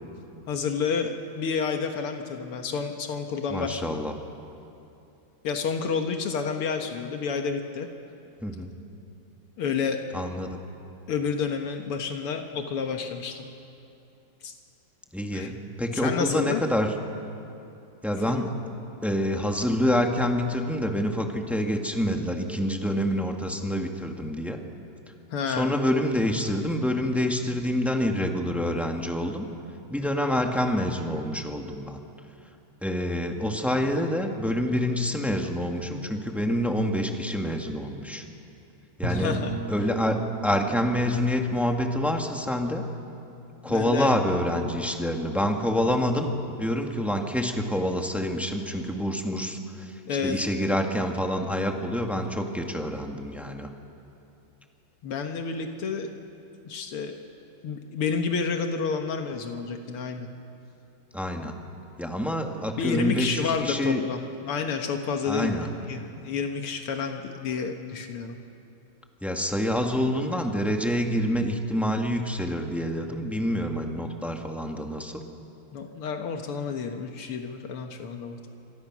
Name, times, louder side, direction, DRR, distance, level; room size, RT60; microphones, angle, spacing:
voice 1, 0.5-3.8 5.4-7.9 9.6-10.0 11.1-13.5 14.4-14.5 15.3-15.5 15.9-16.6 18.3-18.5 25.3-25.7 39.1-39.5 43.7-44.2 50.1-50.4 55.0-56.1 56.7-57.2 57.6-60.3 62.8-64.2 64.5-65.6 65.9-68.4 75.7-78.5, left 5 dB, 80° left, 4 dB, 2.2 m, -30 dB
voice 2, 3.5-4.1 8.4-8.7 10.1-10.6 15.1-16.9 18.0-18.5 19.0-24.6 25.5-29.4 29.9-32.0 32.8-38.2 39.0-39.4 39.7-40.2 40.4-42.9 43.6-49.9 50.2-53.7 61.1-61.5 62.0-64.0 65.2-65.7 69.2-75.2, equal, ahead, 3 dB, 1.5 m, -27 dB
Bowed string instrument, 39.0-43.8, right 2 dB, 55° right, 2.3 m, -37 dB
28.5 x 25.0 x 6.2 m, 2.7 s
omnidirectional pair, 2.4 m